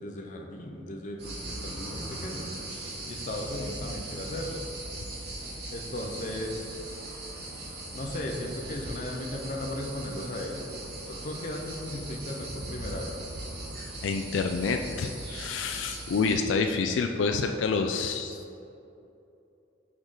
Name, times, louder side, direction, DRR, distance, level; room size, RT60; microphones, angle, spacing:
voice 1, 0.0-2.5 3.1-4.6 5.7-6.7 7.9-10.7 11.1-13.2, left 1 dB, 45° left, 1 dB, 0.6 m, -36 dB
sound 1, 1.2-16.3, right 1 dB, 60° right, 1.4 m, -39 dB
voice 2, 13.8-18.4, left 4 dB, 80° left, 5 dB, 0.3 m, -28 dB
6.3 x 4.8 x 3.7 m, 2.8 s
head